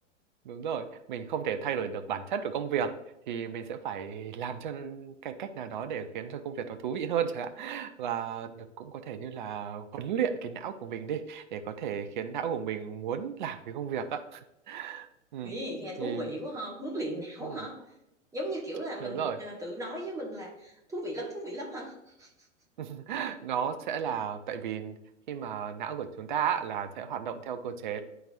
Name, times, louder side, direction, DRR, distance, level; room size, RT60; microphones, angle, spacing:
voice 1, 0.4-2.9 3.3-15.5 16.0-16.3 17.4-17.7 19.0-19.4 22.8-25.0 25.3-28.0, right 8 dB, 40° right, 9 dB, 0.5 m, -34 dB
voice 2, 15.4-17.8 18.3-22.3, right 1 dB, 10° right, -1 dB, 1.3 m, -37 dB
10.5 x 3.9 x 2.5 m, 0.85 s
figure-of-eight pair, 105°, 37 cm